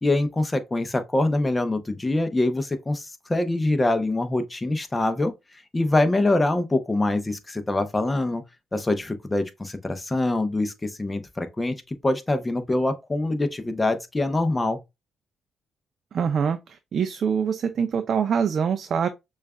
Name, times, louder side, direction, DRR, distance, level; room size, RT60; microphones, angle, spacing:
voice 1, 0.0-5.3 5.7-8.4 8.7-14.8, left 2 dB, 20° left, 0.7 m, -24 dB
voice 2, 16.1-19.1, right 7 dB, 55° right, 0.4 m, -24 dB
6.3 x 2.4 x 2.2 m
cardioid pair, 90°, 0 cm